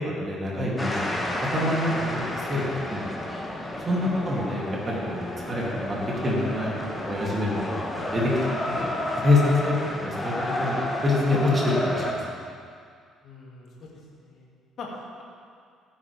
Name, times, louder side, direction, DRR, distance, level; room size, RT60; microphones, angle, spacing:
voice 1, 0.0-3.1 3.9-6.0 6.2-7.8 8.1-8.3 8.7-8.9 9.2-10.3 10.6-12.2, left 2 dB, 35° right, -4 dB, 2.9 m, -26 dB
sound 1, 0.8-12.1, left 1 dB, 20° left, 1.9 m, -31 dB
voice 2, 4.0-4.4 8.6-8.8 9.7-10.2 13.2-14.5 14.8-15.2, left 4 dB, 55° left, -2 dB, 2.4 m, -42 dB
15.5 x 8.7 x 3.5 m, 2.2 s
figure-of-eight pair, 50°, 0 cm